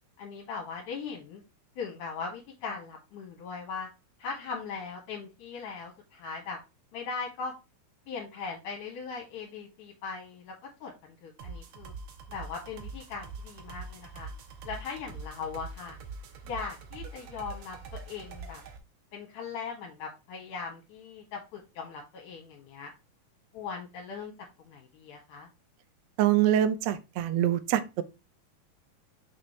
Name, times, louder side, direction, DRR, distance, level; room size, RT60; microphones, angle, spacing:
voice 1, 0.2-1.4 1.8-3.9 4.2-6.6 6.9-7.5 8.1-10.5 10.8-11.9 12.3-14.3 14.6-16.0 16.4-18.6 19.1-22.9 23.5-24.3 24.6-25.5, left 5 dB, 70° left, 2.8 m, -39 dB
sound 1, 11.4-18.8, right 4 dB, 65° right, 2.0 m, -44 dB
voice 2, 26.2-28.0, right 11 dB, 85° right, 1.5 m, -25 dB
6.1 x 6.1 x 3.1 m
omnidirectional pair, 3.9 m